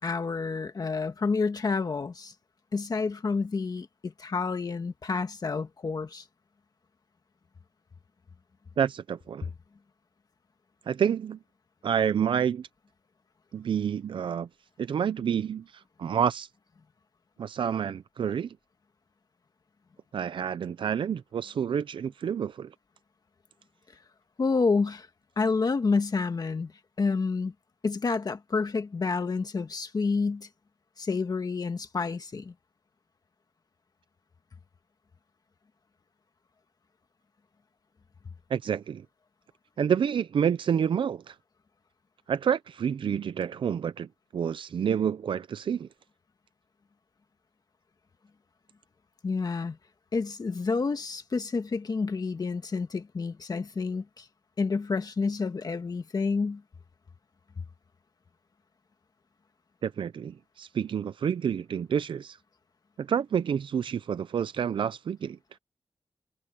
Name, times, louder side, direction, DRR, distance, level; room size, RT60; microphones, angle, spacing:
voice 1, 0.0-2.3 2.7-6.2 24.4-25.1 25.4-26.7 27.0-27.5 27.8-30.5 31.0-32.5 49.2-49.8 50.1-54.3 54.6-56.6, left 4 dB, 50° left, 1.6 m, -29 dB
voice 2, 8.8-9.5 10.9-11.4 11.8-12.7 13.5-14.5 14.8-16.5 17.4-18.6 20.1-22.7 38.5-39.1 39.8-41.4 42.3-44.1 44.3-45.9 59.8-62.4 63.0-65.4, right 8 dB, 80° right, 0.5 m, -28 dB
wide cardioid pair, 100°, 8 cm